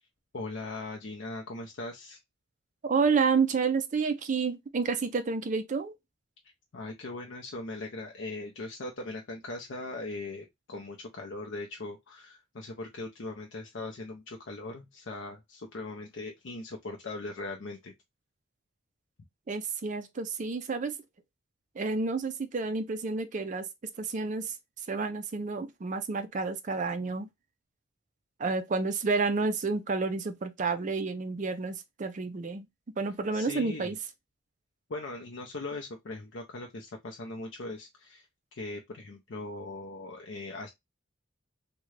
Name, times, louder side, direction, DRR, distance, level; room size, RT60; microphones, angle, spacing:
voice 1, 0.3-2.2 6.7-17.9 33.3-33.9 34.9-38.3 38.6-40.7, left 2 dB, 60° left, 0.5 m, -40 dB
voice 2, 2.8-6.0 19.5-21.0 21.8-23.7 24.0-24.5 24.9-27.3 28.4-32.7 33.0-34.0, right 4 dB, 35° right, 0.4 m, -30 dB
3.6 x 2.2 x 3.1 m
head